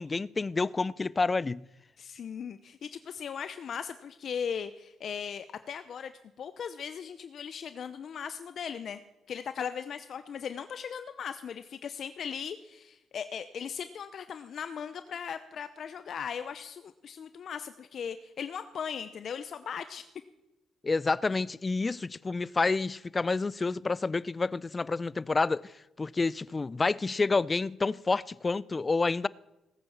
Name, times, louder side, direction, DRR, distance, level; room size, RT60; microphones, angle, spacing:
voice 1, 0.0-1.6 20.8-25.7 26.0-29.3, left 3 dB, 25° left, 0.5 m, -29 dB
voice 2, 2.0-6.1 6.4-9.0 9.3-20.1, left 7 dB, 60° left, 0.8 m, -38 dB
19.0 x 8.7 x 7.3 m
cardioid pair, 90°, 0 cm